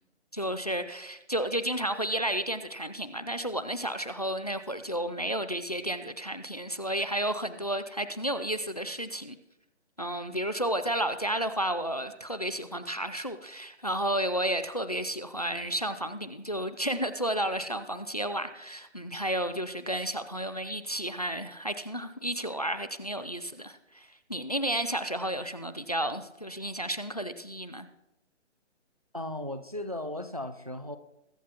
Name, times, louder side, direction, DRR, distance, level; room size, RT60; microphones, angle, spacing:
voice 1, 0.3-9.4 10.0-27.9, right 1 dB, 35° left, 12 dB, 0.4 m, -32 dB
voice 2, 29.1-31.0, left 1 dB, 35° right, 9 dB, 0.4 m, -36 dB
21.5 x 8.0 x 2.9 m, 0.91 s
hypercardioid pair, 175°, 35 cm